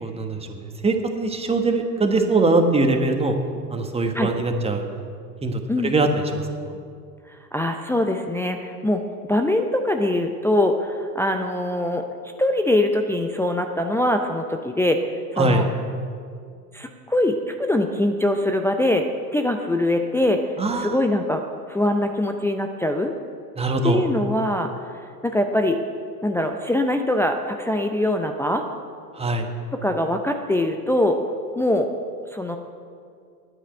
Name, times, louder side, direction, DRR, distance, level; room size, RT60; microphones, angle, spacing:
voice 1, 0.0-3.3 3.7-4.8 5.4-6.8 15.4-15.7 20.6-21.0 23.6-24.0 29.2-29.5, right 2 dB, 10° right, 5 dB, 1.3 m, -22 dB
voice 2, 7.3-9.0 9.3-12.0 12.4-15.0 15.3-15.6 16.7-20.4 20.8-21.4 21.7-23.1 23.8-24.7 25.2-25.8 26.2-28.6 29.8-31.2 31.6-31.9 32.3-32.6, left 1 dB, 5° left, 3 dB, 0.5 m, -22 dB
9.7 x 8.8 x 8.8 m, 2.3 s
hypercardioid pair, 85°, 49 cm